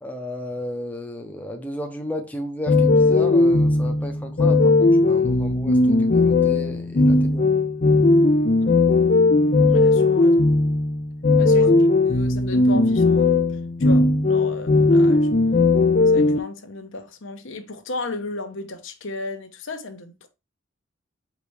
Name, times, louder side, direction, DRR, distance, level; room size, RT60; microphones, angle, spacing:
voice 1, 0.0-7.5 11.5-11.8, equal, 10° left, 0.8 m, -33 dB
sound 1, 2.7-16.4, left 3 dB, 40° left, 0.5 m, -18 dB
voice 2, 9.7-10.4 11.4-11.7 11.9-13.5 13.8-15.3 16.1-20.3, left 2 dB, 75° left, 1.1 m, -34 dB
6.5 x 5.0 x 3.3 m
head